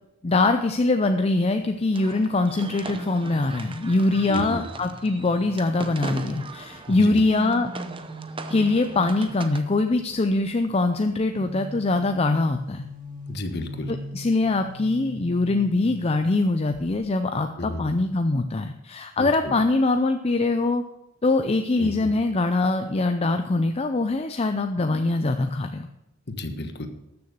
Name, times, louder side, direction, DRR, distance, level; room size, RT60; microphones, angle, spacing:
voice 1, 0.2-7.7 8.5-12.9 13.9-20.8 21.2-25.9, left 2 dB, 30° left, 7 dB, 0.5 m, -23 dB
sound 1, 1.9-9.6, right 3 dB, 25° right, 0.8 m, -40 dB
sound 2, 2.7-6.3 6.9-10.2 11.2-16.4 16.7-17.0, right 1 dB, 40° right, 1.9 m, -41 dB
voice 2, 4.3-4.6 6.9-7.2 13.3-13.9 17.6-17.8 19.2-19.5 21.8-22.1 26.3-26.9, left 1 dB, 55° left, 7 dB, 1.3 m, -32 dB
13.0 x 6.9 x 6.7 m, 0.90 s
head